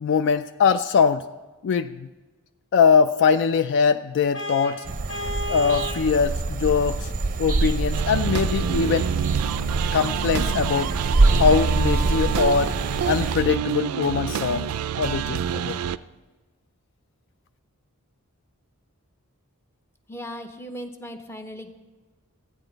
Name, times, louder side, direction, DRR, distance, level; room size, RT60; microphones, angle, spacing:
voice 1, 0.0-1.2 1.6-2.1 2.7-4.8 5.5-7.1 7.4-9.1 9.9-10.9 11.3-12.7 13.1-14.6 15.0-15.8, left 6 dB, 55° left, 12 dB, 0.3 m, -22 dB
Vehicle horn car horn honking, 4.3-6.1, left 1 dB, 90° left, 3.0 m, -32 dB
sound 1, 4.8-13.4, right 2 dB, 35° right, 0.5 m, -25 dB
sound 2, 7.9-16.0, right 8 dB, 90° right, 0.4 m, -27 dB
voice 2, 20.1-21.7, equal, 10° left, 6 dB, 0.7 m, -37 dB
13.5 x 9.4 x 3.9 m, 1.2 s
head